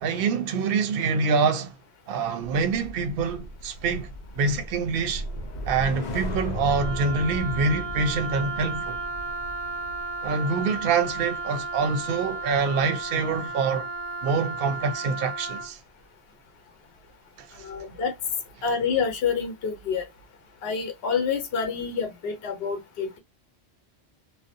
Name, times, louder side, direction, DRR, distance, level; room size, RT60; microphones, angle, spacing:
voice 1, 0.0-1.8 2.1-5.2 5.6-9.0 10.2-13.9 14.2-15.8 17.4-17.7, right 4 dB, 65° right, 0.7 m, -26 dB
sound 1, 2.4-12.8 13.1-13.5, left 1 dB, 50° left, 0.6 m, -37 dB
Wind instrument woodwind instrument, 6.6-15.7, right 3 dB, 30° right, 0.7 m, -34 dB
voice 2, 17.5-18.1 18.6-20.0 20.6-23.2, left 6 dB, 70° left, 0.9 m, -28 dB
2.5 x 2.0 x 2.5 m
omnidirectional pair, 1.1 m